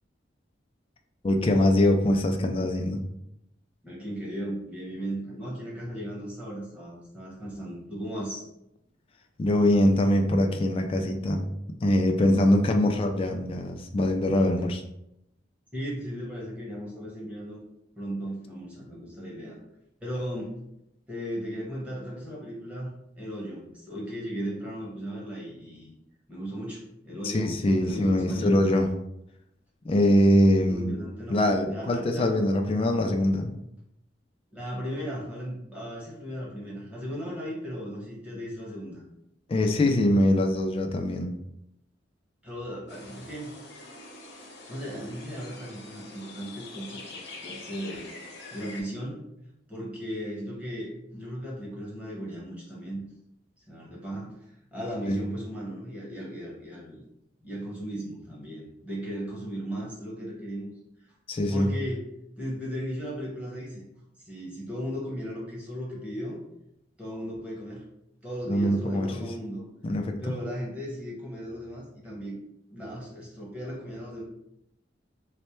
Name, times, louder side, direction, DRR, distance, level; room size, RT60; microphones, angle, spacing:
voice 1, 1.2-3.0 9.4-11.4 11.8-14.8 27.2-28.9 29.8-31.0 31.3-33.6 39.5-41.3 55.1-55.2 61.3-61.7 68.5-69.1 69.8-70.2, left 1 dB, 30° left, 4 dB, 0.3 m, -23 dB
voice 2, 3.8-8.5 15.7-17.6 18.0-19.6 20.0-20.5 21.1-25.9 26.3-28.6 30.6-32.3 34.5-39.0 42.4-43.5 44.5-47.0 47.4-48.1 48.5-49.2 49.7-53.0 53.6-57.0 57.4-60.7 61.5-62.0 62.4-63.9 64.2-66.4 67.0-67.8 68.2-69.6 70.2-72.4 72.7-74.2, equal, 5° right, -5 dB, 1.1 m, -36 dB
sound 1, 42.9-48.8, left 3 dB, 65° left, 0.8 m, -45 dB
3.2 x 2.1 x 4.2 m, 0.82 s
head